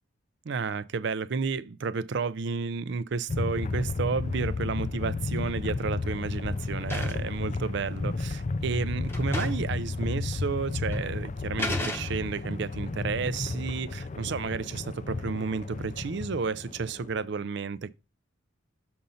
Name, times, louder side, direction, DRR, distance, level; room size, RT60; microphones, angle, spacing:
voice 1, 0.5-17.9, right 5 dB, 55° right, 0.4 m, -32 dB
sound 1, 3.3-17.3, left 3 dB, 35° left, 0.4 m, -32 dB
sound 2, 5.4-5.7 6.0-7.4 8.3-8.4 8.7-8.8 9.1-9.8 10.0-10.1 10.9-11.1 11.6-12.5, left 1 dB, 10° left, 0.8 m, -36 dB
6.9 x 3.8 x 5.5 m
head